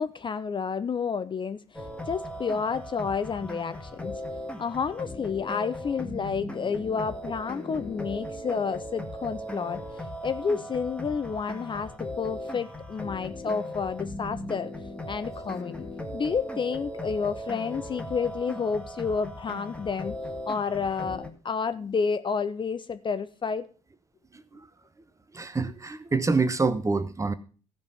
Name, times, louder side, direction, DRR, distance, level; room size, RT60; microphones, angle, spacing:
voice 1, 0.0-4.2 4.6-9.8 10.2-14.7 15.1-15.9 16.1-20.2 20.5-23.7, left 5 dB, 30° left, 0.6 m, -30 dB
sound 1, 1.7-21.3, left 1 dB, 5° left, 1.7 m, -38 dB
voice 2, 25.3-27.3, right 4 dB, 20° right, 1.0 m, -26 dB
14.5 x 5.3 x 5.4 m
figure-of-eight pair, 50°, 16 cm